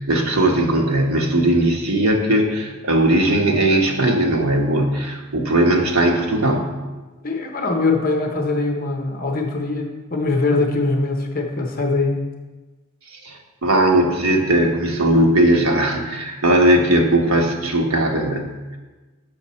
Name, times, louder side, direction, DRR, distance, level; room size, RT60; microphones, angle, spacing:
voice 1, 0.0-6.8 13.2-18.5, right 1 dB, 90° right, 1 dB, 1.1 m, -18 dB
voice 2, 7.2-12.2, left 3 dB, 40° left, 2 dB, 0.8 m, -22 dB
7.0 x 5.8 x 4.2 m, 1.2 s
head